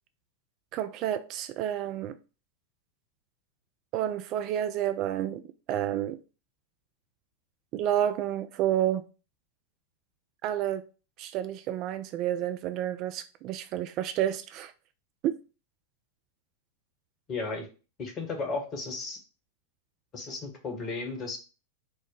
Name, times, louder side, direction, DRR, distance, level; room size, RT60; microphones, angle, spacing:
voice 1, 0.7-2.2 3.9-5.4 5.7-6.2 7.7-9.0 10.4-10.8 11.2-14.7 15.2-15.4, right 11 dB, 40° right, 0.3 m, -30 dB
voice 2, 17.3-17.7 18.0-19.2 20.1-21.4, left 3 dB, 30° left, 1.3 m, -34 dB
4.5 x 2.1 x 4.6 m
figure-of-eight pair, 90°, 0 cm